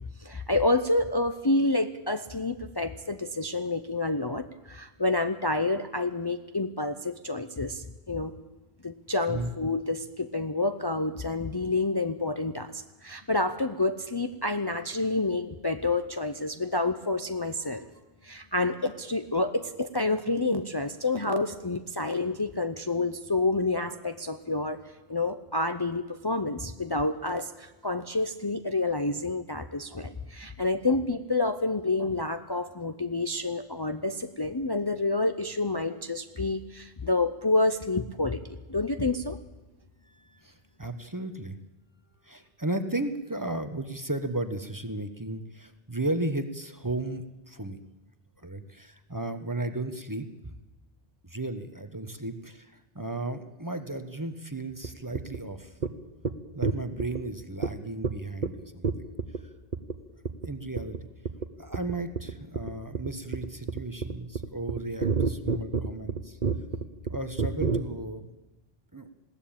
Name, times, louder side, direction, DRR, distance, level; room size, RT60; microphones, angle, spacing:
voice 1, 0.2-8.3 8.8-17.9 18.2-24.8 25.1-38.4 38.7-39.4, left 2 dB, 25° left, 8 dB, 0.8 m, -28 dB
voice 2, 40.0-41.6 42.2-47.8 48.4-50.5 51.2-55.7 56.5-58.9 60.4-61.0 61.6-66.4 67.1-68.3 68.9-69.1, right 2 dB, 20° right, 9 dB, 1.1 m, -34 dB
sound 1, 54.8-54.9 55.2-55.4 55.8-55.9 56.2-56.3 56.6-57.2 57.6-57.7 58.0-58.1 58.4-58.5 58.8-59.4 59.7-60.0 60.3-60.5 60.8-61.0 61.3-61.5 61.7-67.8, right 5 dB, 50° right, 1.2 m, -28 dB
20.5 x 16.5 x 8.8 m, 1.1 s
omnidirectional pair, 1.0 m